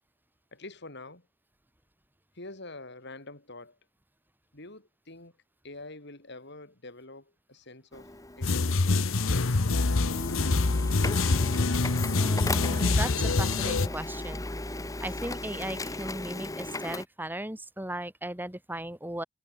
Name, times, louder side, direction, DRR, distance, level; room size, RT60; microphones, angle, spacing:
voice 1, 0.5-1.3 2.3-3.8 4.5-5.4 5.6-10.4, left 2 dB, 60° left, 6.1 m, -47 dB
Printer, 7.9-17.0, left 2 dB, 15° left, 1.8 m, -37 dB
sound 1, 8.4-13.9, left 3 dB, 80° left, 1.0 m, -25 dB
voice 2, 12.1-14.4 15.0-19.2, right 1 dB, 10° right, 4.6 m, -37 dB
head